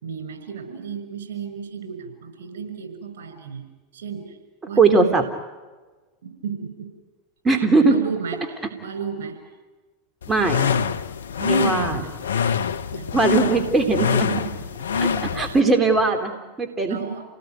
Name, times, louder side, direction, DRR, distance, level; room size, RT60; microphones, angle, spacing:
voice 1, 0.0-3.7 3.9-4.4 4.7-5.1 6.2-6.9 7.9-9.4 11.4-12.1 12.9-13.3 14.3-14.6 16.9-17.2, right 6 dB, 75° right, 6 dB, 6.1 m, -33 dB
voice 2, 4.8-5.2 7.4-8.0 10.3-10.7 11.5-12.0 13.1-14.3 15.0-17.0, right 3 dB, 20° right, 6 dB, 3.1 m, -19 dB
sound 1, 10.2-15.6, left 6 dB, 85° left, 1.0 m, -25 dB
28.5 x 19.0 x 9.3 m, 1.2 s
hypercardioid pair, 95°, 0 cm